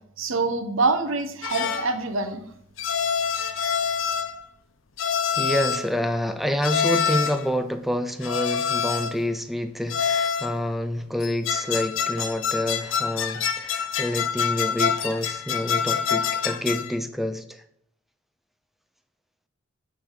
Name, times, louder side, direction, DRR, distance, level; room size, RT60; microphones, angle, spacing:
voice 1, 0.2-2.4, right 3 dB, 75° right, 9 dB, 0.9 m, -25 dB
sound 1, 1.4-1.9 2.8-4.4 5.0-5.9 6.6-7.5 8.2-9.2 9.9-10.6 11.2-16.9, left 7 dB, 70° left, 0.7 m, -26 dB
voice 2, 5.3-17.6, left 1 dB, ahead, 9 dB, 0.5 m, -28 dB
9.3 x 3.4 x 6.5 m, 0.71 s
head